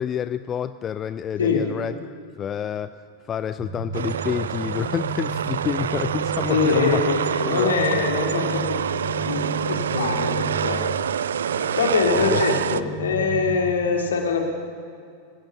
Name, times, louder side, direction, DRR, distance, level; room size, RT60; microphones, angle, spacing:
voice 1, 0.0-2.0 2.4-2.9 3.3-7.0 7.5-7.8 11.5-11.8 12.1-12.4, left 9 dB, 25° left, 13 dB, 0.5 m, -28 dB
voice 2, 1.4-1.7 6.5-10.9 11.8-14.4, left 5 dB, 65° left, 2 dB, 3.0 m, -24 dB
sound 1, 3.6-13.6, right 3 dB, 30° right, 6.9 m, -33 dB
sound 2, 3.9-12.8, right 8 dB, 65° right, 0.5 m, -26 dB
25.0 x 15.5 x 7.1 m, 2.4 s
figure-of-eight pair, 90°, 0 cm